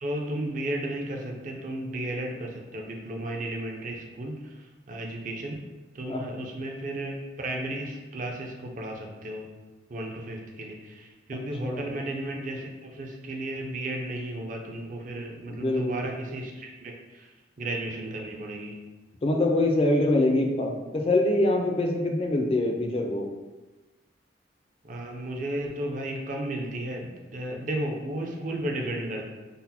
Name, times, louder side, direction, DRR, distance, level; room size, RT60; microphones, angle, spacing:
voice 1, 0.0-5.6 5.9-9.5 9.9-18.8 24.8-29.2, right 1 dB, 45° right, 1 dB, 0.5 m, -34 dB
voice 2, 6.1-6.5 11.6-11.9 15.5-16.1 19.2-23.3, left 2 dB, 30° left, 2 dB, 0.4 m, -24 dB
4.0 x 2.1 x 4.1 m, 1.2 s
head